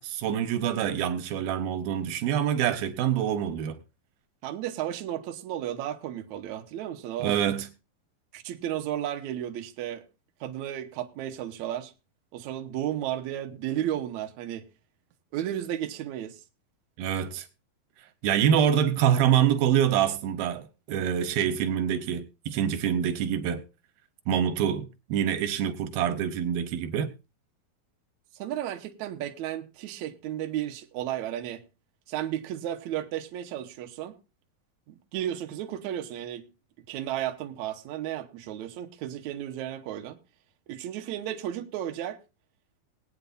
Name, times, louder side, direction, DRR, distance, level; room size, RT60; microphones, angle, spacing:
voice 1, 0.0-3.8 7.2-7.7 17.0-17.5 18.2-23.6 24.3-27.1, right 9 dB, 90° right, 2.8 m, -26 dB
voice 2, 4.4-7.4 8.3-10.1 10.4-11.9 12.3-14.6 15.3-16.4 28.4-31.6 32.1-34.2 34.9-36.5 36.9-40.2 40.7-42.2, right 11 dB, 70° right, 2.0 m, -33 dB
21.0 x 8.8 x 2.6 m
omnidirectional pair, 4.2 m